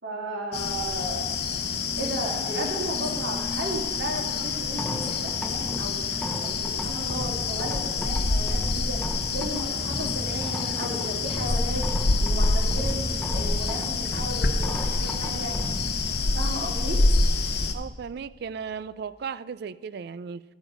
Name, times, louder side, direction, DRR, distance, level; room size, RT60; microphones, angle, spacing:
voice 1, 0.0-1.3 2.0-6.0 6.4-9.0 9.3-11.8 12.2-15.6 16.3-17.0, right 1 dB, 80° right, -4 dB, 3.0 m, -34 dB
sound 1, 0.5-17.7, left 3 dB, 60° left, 0.8 m, -27 dB
sound 2, 4.7-18.9, equal, 5° left, 0.8 m, -36 dB
voice 2, 17.7-20.4, right 6 dB, 60° right, 17 dB, 0.3 m, -36 dB
12.5 x 7.5 x 5.0 m, 1.3 s
head